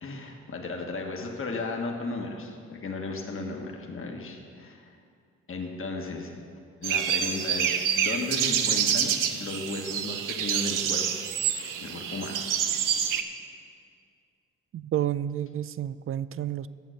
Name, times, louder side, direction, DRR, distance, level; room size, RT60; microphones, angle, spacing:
voice 1, 0.0-4.9 5.5-6.3 6.8-11.0 11.8-12.4, left 3 dB, 40° left, 1 dB, 1.4 m, -35 dB
sound 1, 6.8-13.2, right 8 dB, 70° right, 0.7 m, -27 dB
voice 2, 14.7-16.7, right 11 dB, 40° right, 17 dB, 0.4 m, -30 dB
9.0 x 7.3 x 6.4 m, 2.2 s
hypercardioid pair, 45°, 33 cm